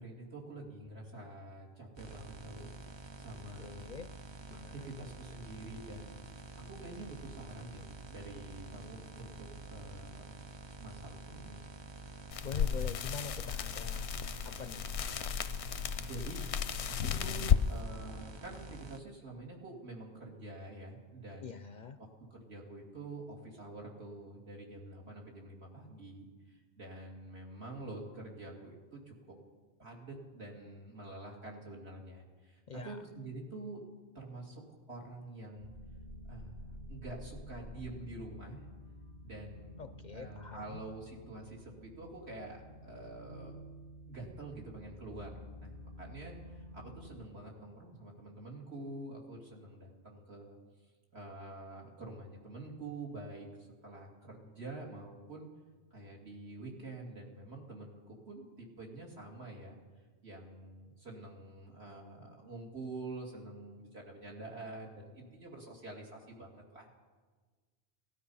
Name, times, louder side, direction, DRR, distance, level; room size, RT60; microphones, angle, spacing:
voice 1, 0.0-2.7 3.2-3.9 4.5-6.2 6.5-10.3 10.8-11.6 16.1-16.4 16.9-21.6 22.3-29.3 29.8-33.9 34.1-34.6 34.9-35.7 36.3-38.7 39.2-43.6 44.0-50.6 51.1-55.5 55.9-59.8 60.2-66.9, right 2 dB, 70° right, -2 dB, 2.9 m, -47 dB
sound 1, 2.0-19.0, right 3 dB, 35° right, 0.5 m, -49 dB
voice 2, 3.6-4.1 4.5-5.1 12.1-14.9 21.4-22.0 32.7-33.0 39.8-40.8, left 6 dB, 55° left, 10 dB, 0.6 m, -45 dB
sound 2, 12.3-17.6, left 8 dB, 85° left, 0.9 m, -33 dB
sound 3, 35.6-47.3, equal, 55° right, 5.2 m, -50 dB
18.0 x 12.5 x 5.5 m, 1.4 s
omnidirectional pair, 1.1 m